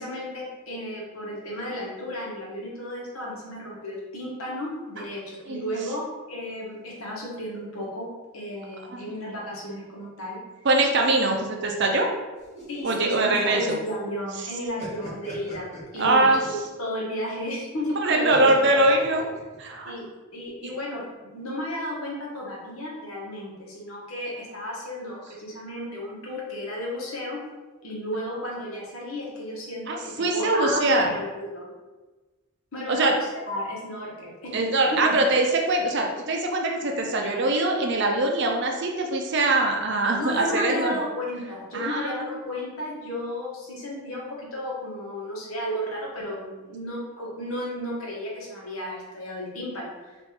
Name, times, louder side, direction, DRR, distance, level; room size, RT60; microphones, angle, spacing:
voice 1, 0.0-8.1 8.3-10.4 12.7-18.8 19.9-20.0 20.3-27.4 27.8-31.7 32.7-34.6 34.9-35.2 40.2-50.2, left 1 dB, 70° left, -4 dB, 1.2 m, -33 dB
voice 2, 10.6-12.1 12.8-13.8 16.0-16.4 18.0-19.3 19.6-19.9 29.9-31.1 32.9-33.1 34.5-41.0 41.7-42.3, right 2 dB, 50° right, 2 dB, 0.5 m, -23 dB
sound 1, 12.4-14.1 14.4-16.6 18.3-19.7, equal, 30° left, 1.3 m, -42 dB
3.2 x 2.6 x 4.3 m, 1.2 s
head